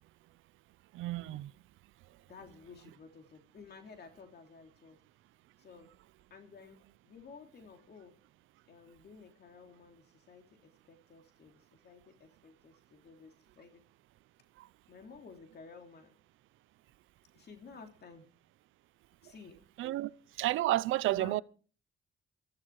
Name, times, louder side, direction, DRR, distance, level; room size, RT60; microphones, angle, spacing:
voice 1, 0.9-1.5 14.6-14.7 19.8-20.1 20.4-21.4, right 16 dB, 85° right, 0.6 m, -31 dB
voice 2, 2.3-5.0 5.6-5.9 6.3-8.2 8.7-13.8 14.9-16.1 17.3-18.3 19.2-19.6 21.1-21.4, left 5 dB, 55° left, 3.0 m, -53 dB
15.0 x 14.0 x 4.7 m
cardioid pair, 90°, 20 cm